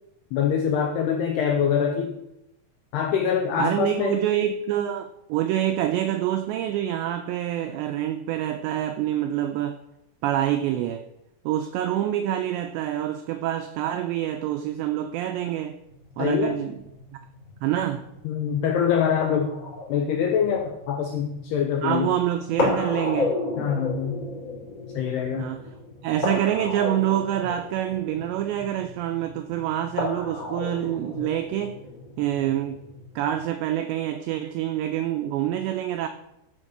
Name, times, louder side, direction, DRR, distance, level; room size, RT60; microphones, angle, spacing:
voice 1, 0.3-2.1 2.9-4.2 16.2-16.6 18.2-19.6 19.9-22.1 23.6-24.3 24.9-25.5, left 7 dB, 90° left, 2.3 m, -24 dB
voice 2, 3.6-9.8 10.2-11.1 11.5-15.8 16.2-16.8 17.1-17.2 17.6-18.1 21.8-23.4 25.4-25.6 26.0-31.8 32.2-32.8 33.2-36.1, right 11 dB, 90° right, 2.5 m, -26 dB
sound 1, 15.9-33.4, left 2 dB, 20° left, 3.0 m, -33 dB
13.5 x 5.1 x 6.6 m
omnidirectional pair, 5.7 m